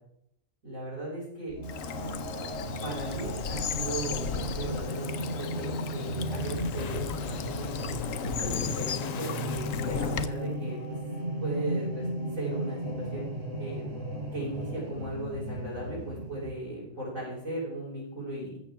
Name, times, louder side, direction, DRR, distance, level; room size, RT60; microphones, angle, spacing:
voice 1, 0.6-1.6 2.8-7.7 8.2-10.8 11.4-12.1 12.3-13.3 13.6-14.0 14.3-18.6, right 2 dB, 90° right, -8 dB, 6.6 m, -37 dB
sound 1, 1.5-16.5, right 1 dB, 55° right, 4.8 m, -35 dB
Bird vocalization bird call bird song / Stream, 1.6-10.3, left 8 dB, 90° left, 1.2 m, -36 dB
sound 2, 6.2-10.5, left 7 dB, 55° left, 0.5 m, -39 dB
14.5 x 14.5 x 3.7 m, 0.75 s
omnidirectional pair, 1.3 m